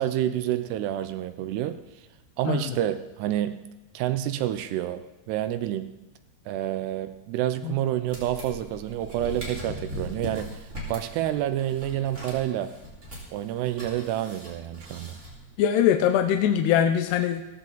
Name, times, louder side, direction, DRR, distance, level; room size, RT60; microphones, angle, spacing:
voice 1, 0.0-1.8 2.4-3.6 3.9-6.0 6.5-12.7 13.3-15.2, right 12 dB, 80° right, 11 dB, 2.7 m, -28 dB
sound 1, 8.1-15.7, equal, 15° right, 3.5 m, -40 dB
voice 2, 15.6-17.4, left 9 dB, 80° left, 6 dB, 2.8 m, -22 dB
16.5 x 15.0 x 3.9 m, 1.1 s
omnidirectional pair, 4.9 m